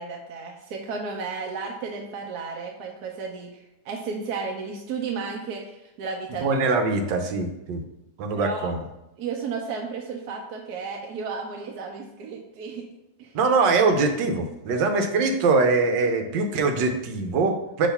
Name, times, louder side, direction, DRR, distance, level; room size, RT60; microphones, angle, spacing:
voice 1, 0.0-3.5 3.8-6.6 8.3-8.7 9.2-12.8 13.2-13.3, right 5 dB, 70° right, 1 dB, 1.1 m, -33 dB
voice 2, 6.4-7.8 8.2-8.8 13.3-17.9, right 3 dB, 85° right, 5 dB, 1.4 m, -23 dB
6.3 x 3.0 x 5.5 m, 0.91 s
omnidirectional pair, 1.9 m